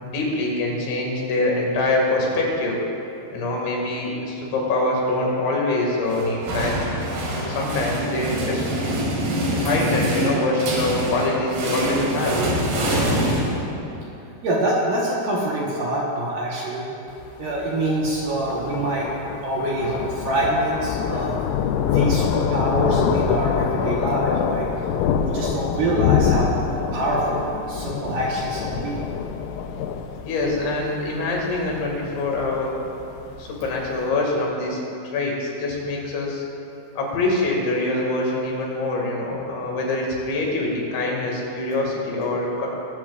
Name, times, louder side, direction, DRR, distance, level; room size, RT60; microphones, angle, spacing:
voice 1, 0.0-2.8 3.3-6.9 7.5-8.6 9.6-12.4 30.2-32.7 33.4-34.8 35.0-36.4 37.0-42.7, left 2 dB, 70° left, -2 dB, 4.2 m, -24 dB
sound 1, 6.1-14.0, right 1 dB, 55° right, 3.7 m, -25 dB
voice 2, 14.4-16.9 17.4-19.1 19.4-21.4 21.9-24.7 25.2-26.6 26.9-29.0, right 1 dB, 75° right, -4 dB, 2.0 m, -25 dB
Thunder, 17.1-34.0, left 7 dB, 90° left, 3.4 m, -25 dB
21.5 x 14.0 x 2.4 m, 2.8 s
omnidirectional pair, 5.8 m